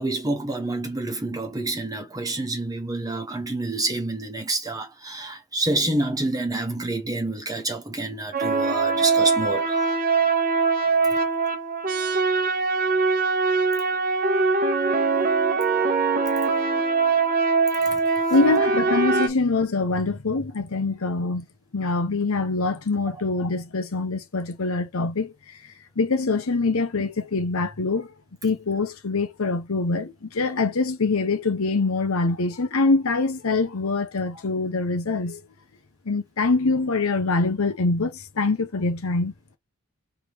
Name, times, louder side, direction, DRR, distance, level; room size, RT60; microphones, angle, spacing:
voice 1, 0.0-10.0 16.5-16.6 17.8-18.2, right 2 dB, 15° right, 1.1 m, -28 dB
sound 1, 8.3-19.3, right 4 dB, 40° right, 0.9 m, -22 dB
voice 2, 18.3-21.4 21.7-25.3 26.0-28.1 28.4-35.4 36.1-39.3, left 3 dB, 65° left, 0.9 m, -24 dB
4.6 x 3.1 x 3.5 m
head